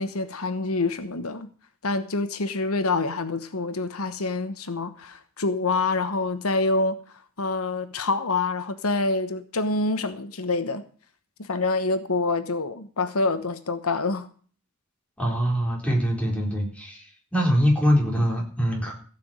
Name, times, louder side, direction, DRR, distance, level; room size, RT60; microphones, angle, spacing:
voice 1, 0.0-1.5 1.8-7.0 7.4-10.8 11.4-14.3, left 3 dB, 85° left, 1.2 m, -26 dB
voice 2, 15.2-17.0 17.3-18.9, equal, 5° left, 4.3 m, -23 dB
15.5 x 6.2 x 8.9 m
head